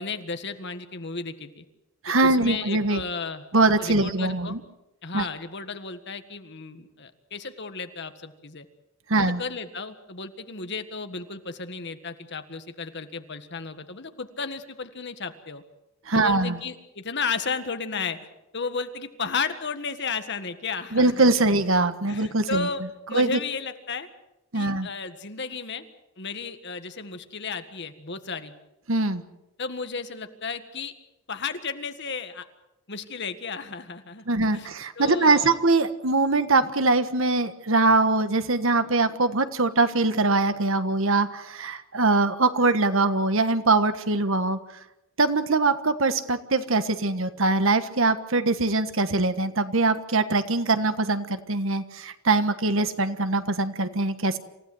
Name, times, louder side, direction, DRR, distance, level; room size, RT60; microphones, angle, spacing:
voice 1, 0.0-1.6 2.2-3.4 3.8-4.5 5.0-8.6 9.1-15.6 16.1-18.2 18.5-21.5 22.1-22.8 23.1-24.1 24.5-25.9 26.2-28.5 29.6-30.9 31.3-32.4 32.9-34.2 34.5-35.6, left 5 dB, 55° left, 9 dB, 1.7 m, -34 dB
voice 2, 2.0-3.0 3.5-4.6 5.1-5.2 9.1-9.4 16.1-16.6 20.9-22.7 23.1-23.4 24.5-24.9 28.9-29.2 34.3-44.6 45.2-54.4, right 3 dB, 65° right, 10 dB, 1.5 m, -22 dB
27.5 x 16.5 x 7.9 m, 0.94 s
head